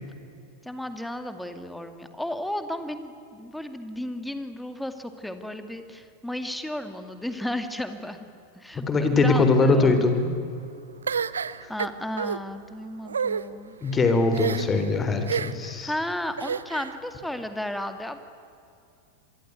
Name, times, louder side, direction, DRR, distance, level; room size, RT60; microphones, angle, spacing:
voice 1, 0.6-8.3 8.5-10.0 11.7-13.7 14.3-15.2 15.8-18.2, left 1 dB, 5° left, 8 dB, 2.2 m, -34 dB
voice 2, 8.9-10.4 13.8-15.9, left 3 dB, 20° left, 8 dB, 3.8 m, -21 dB
sound 1, 11.1-12.4 13.0-13.4 14.3-14.8 15.3-15.7 16.4-16.9, right 6 dB, 70° right, 0.8 m, -29 dB
27.0 x 22.5 x 9.5 m, 2.6 s
figure-of-eight pair, 90°, 0 cm